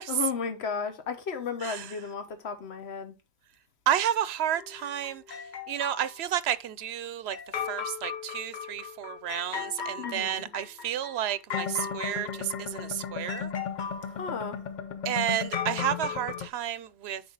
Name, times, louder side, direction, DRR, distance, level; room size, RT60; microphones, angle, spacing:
voice 1, 0.1-3.1 10.0-10.5 14.2-14.6, left 6 dB, 80° left, 1.2 m, -34 dB
voice 2, 3.9-5.4 5.7-7.4 7.7-13.5 15.0-17.2, right 10 dB, 80° right, 0.9 m, -31 dB
sound 1, 4.5-6.1 7.3-16.5, left 7 dB, 50° left, 0.7 m, -35 dB
9.6 x 3.8 x 3.8 m
omnidirectional pair, 1.1 m